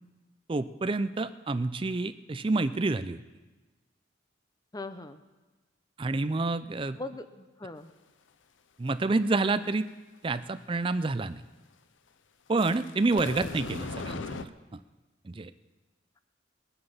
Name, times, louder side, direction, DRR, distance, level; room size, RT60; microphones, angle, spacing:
voice 1, 0.5-3.2 6.0-7.0 8.8-9.9 10.2-11.4 12.5-14.5 15.2-15.5, right 3 dB, 25° right, 13 dB, 0.4 m, -28 dB
voice 2, 4.7-5.2 7.0-7.9 14.1-14.2, left 2 dB, 20° left, 10 dB, 0.6 m, -40 dB
sound 1, 12.6-14.4, left 4 dB, 80° left, 0.6 m, -38 dB
21.0 x 7.8 x 5.6 m, 1.2 s
head